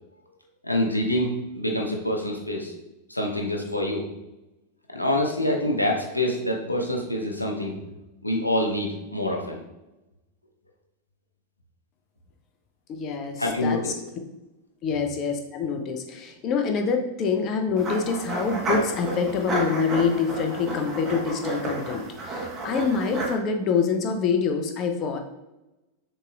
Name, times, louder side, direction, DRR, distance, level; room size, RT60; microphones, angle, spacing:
voice 1, 0.6-2.7 3.1-4.0 4.9-7.7 8.2-9.6 13.4-13.8, left 1 dB, 85° left, 1 dB, 0.6 m, -26 dB
voice 2, 12.9-13.9 14.8-25.2, left 5 dB, 35° left, 5 dB, 0.5 m, -26 dB
sound 1, 17.8-23.4, right 2 dB, 20° right, 1.2 m, -31 dB
6.5 x 3.0 x 2.4 m, 0.98 s
figure-of-eight pair, 90°, 0 cm